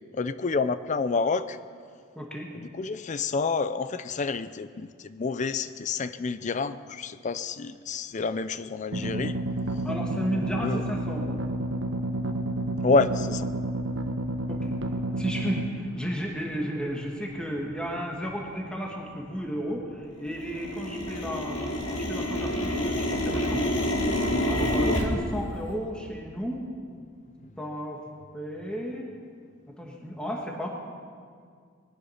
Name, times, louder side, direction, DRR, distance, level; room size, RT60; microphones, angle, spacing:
voice 1, 0.1-1.6 2.5-9.3 10.6-10.8 12.8-13.5, left 4 dB, 35° left, 13 dB, 0.4 m, -28 dB
voice 2, 2.1-2.5 9.8-11.4 14.5-14.7 15.2-23.9 24.5-26.6 27.6-28.0 28.3-29.1 29.7-30.7, equal, 5° left, -1 dB, 1.7 m, -33 dB
sound 1, 8.9-15.7, right 1 dB, 65° right, 1.1 m, -30 dB
sound 2, 14.2-14.3 14.9-15.0 15.6-15.9 16.4-16.5 16.7-17.3 17.6-19.9 20.2-25.0, left 1 dB, 65° left, 2.3 m, -29 dB
20.5 x 11.5 x 5.8 m, 2.1 s
head